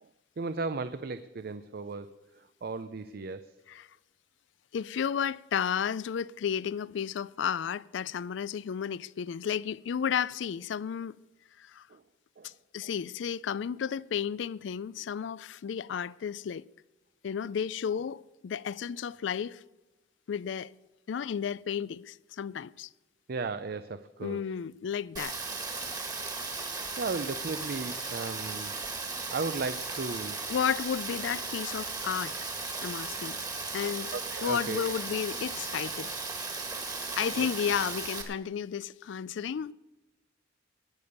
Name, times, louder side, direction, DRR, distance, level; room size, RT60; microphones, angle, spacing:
voice 1, 0.4-2.1 2.6-3.4 11.9-12.0 12.4-12.5 12.8-12.9 23.3-24.4 27.0-28.7 29.3-30.4 34.1-34.9 37.4-37.5, right 4 dB, 55° right, 0.5 m, -35 dB
voice 2, 4.7-11.2 11.6-11.9 12.4-16.6 17.2-19.6 20.3-20.7 21.1-22.9 24.2-25.4 30.5-32.4 32.8-33.4 33.7-34.1 34.4-36.1 37.2-39.7, left 7 dB, 70° left, 0.4 m, -32 dB
Rain, 25.2-38.2, right 4 dB, 20° right, 1.8 m, -36 dB
19.5 x 7.0 x 6.5 m
head